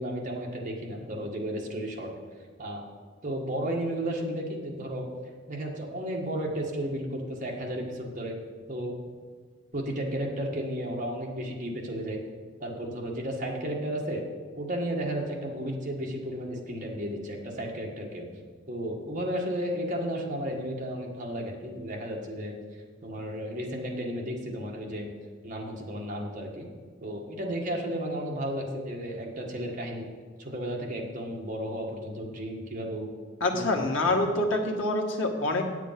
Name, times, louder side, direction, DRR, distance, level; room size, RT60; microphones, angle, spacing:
voice 1, 0.0-2.1 2.6-2.9 3.2-5.1 5.5-8.3 8.7-8.9 9.7-12.2 12.6-14.2 14.5-18.3 18.7-22.5 23.0-25.1 25.4-26.7 27.0-30.1 30.4-33.1 33.5-33.7, right 1 dB, 40° right, -1 dB, 1.7 m, -33 dB
voice 2, 33.4-35.6, left 2 dB, 85° left, 2 dB, 1.4 m, -26 dB
8.7 x 8.3 x 5.9 m, 1.6 s
head